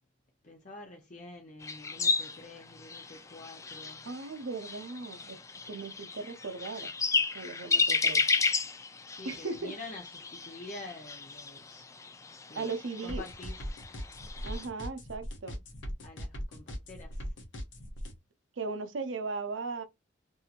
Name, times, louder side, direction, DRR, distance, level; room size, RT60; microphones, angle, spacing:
voice 1, 0.4-4.1 9.0-11.9 12.5-12.7 13.0-13.5 16.0-17.3, left 2 dB, 45° left, 0.7 m, -47 dB
sound 1, 1.6-14.7, left 4 dB, 15° left, 0.3 m, -33 dB
voice 2, 4.0-6.9 7.3-8.3 9.2-9.7 12.5-13.3 14.4-15.6 18.6-19.8, right 4 dB, 85° right, 0.6 m, -37 dB
sound 2, 13.1-18.1, equal, 80° left, 0.9 m, -39 dB
2.8 x 2.7 x 2.4 m
head